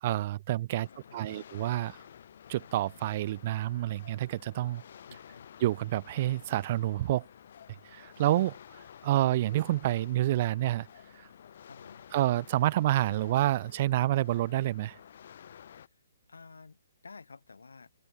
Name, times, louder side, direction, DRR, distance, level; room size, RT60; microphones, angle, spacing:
voice 1, 0.0-0.9 1.1-2.0 2.5-4.8 5.6-7.3 7.8-10.9 11.1-11.3 12.1-15.0, right 14 dB, 40° right, 0.6 m, -28 dB
voice 2, 0.8-1.4 5.1-5.5 11.6-12.0 15.9-16.0 16.3-17.9, left 4 dB, 75° left, 4.5 m, -52 dB
sound 1, 0.8-15.9, left 9 dB, 55° left, 3.1 m, -52 dB
figure-of-eight pair, 130°, 0 cm